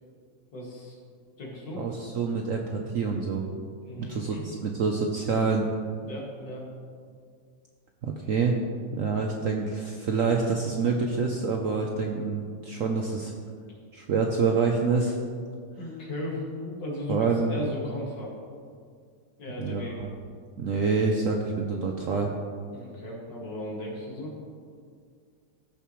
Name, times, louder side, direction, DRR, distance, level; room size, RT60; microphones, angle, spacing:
voice 1, 0.5-1.0 1.4-1.8 3.8-4.4 6.0-6.7 15.8-18.3 19.4-19.9 22.7-24.3, left 1 dB, 70° left, -4 dB, 2.7 m, -36 dB
voice 2, 1.8-3.4 4.0-5.7 8.0-8.6 8.9-13.3 13.9-15.2 17.1-17.6 19.6-20.1 20.6-22.3, right 4 dB, 65° right, 1 dB, 0.8 m, -27 dB
15.0 x 6.8 x 3.1 m, 2.1 s
omnidirectional pair, 2.0 m